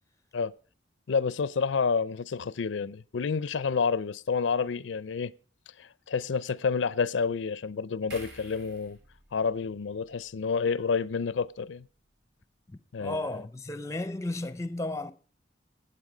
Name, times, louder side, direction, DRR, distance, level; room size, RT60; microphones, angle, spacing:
voice 1, 1.1-5.3 5.8-9.0 9.3-11.9 12.9-13.3, left 5 dB, 80° left, 0.5 m, -29 dB
sound 1, 8.1-11.5 11.8-12.0, right 1 dB, 65° right, 7.5 m, -52 dB
voice 2, 12.7-15.1, left 2 dB, 15° left, 0.5 m, -34 dB
17.0 x 7.8 x 5.0 m
head